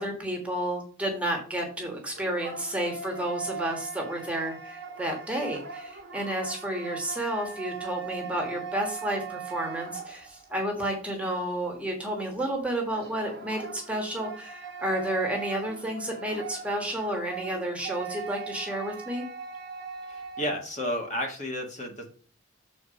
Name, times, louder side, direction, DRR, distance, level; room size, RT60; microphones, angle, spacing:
voice 1, 0.0-19.2, right 1 dB, 5° right, 1 dB, 1.4 m, -31 dB
sound 1, 1.9-10.6 12.9-20.7, right 6 dB, 50° right, 1.2 m, -40 dB
voice 2, 20.1-22.1, equal, 35° left, 2 dB, 1.6 m, -32 dB
7.3 x 4.2 x 5.0 m, 0.43 s
head